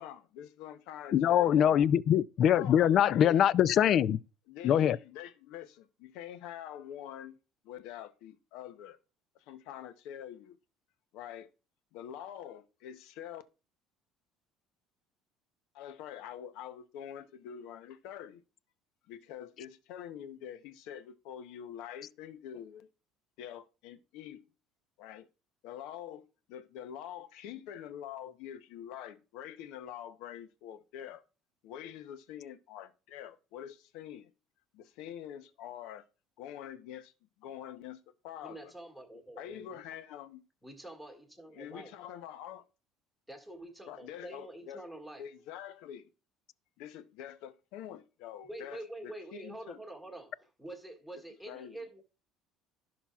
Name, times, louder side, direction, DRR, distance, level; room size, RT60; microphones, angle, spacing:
voice 1, 0.0-1.9 2.4-3.4 4.5-7.4 7.6-9.0 9.4-10.6 11.1-11.5 11.9-13.4 15.7-18.4 19.1-22.9 23.4-24.4 25.0-25.3 25.6-31.2 31.6-34.3 34.7-36.0 36.4-37.1 37.4-38.7 39.1-40.4 41.5-42.6 43.9-44.8 45.2-46.1 46.8-49.8 51.5-51.9, left 10 dB, 75° left, 0.8 m, -45 dB
voice 2, 1.1-4.2 4.6-5.0, left 10 dB, 45° left, 0.3 m, -23 dB
voice 3, 38.4-39.8 40.6-41.9 43.3-45.3 48.5-52.0, right 1 dB, 5° left, 1.9 m, -46 dB
15.5 x 5.9 x 2.4 m
cardioid pair, 150°, 0 cm